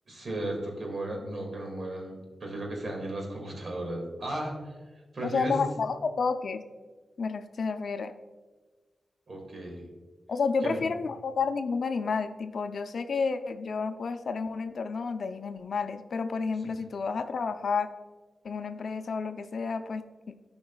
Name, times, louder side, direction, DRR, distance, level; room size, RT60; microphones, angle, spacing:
voice 1, 0.1-4.7 5.1-5.6 9.3-9.9 10.6-10.8 16.6-16.7, right 1 dB, 55° right, 0 dB, 2.1 m, -35 dB
voice 2, 5.2-6.6 7.2-8.1 10.3-17.9 18.4-20.4, left 5 dB, 70° left, 9 dB, 0.5 m, -30 dB
12.0 x 5.2 x 2.3 m, 1.4 s
cardioid pair, 80°, 0 cm